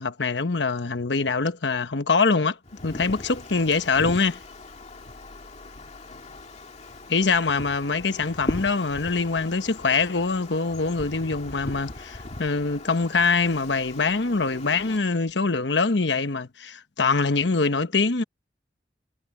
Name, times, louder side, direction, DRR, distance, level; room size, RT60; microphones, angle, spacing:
voice 1, 0.0-2.6 2.8-4.4 7.1-18.2, left 4 dB, 80° left, 1.1 m, -24 dB
Wind, 2.6-15.0, left 2 dB, 40° left, 2.2 m, -39 dB
head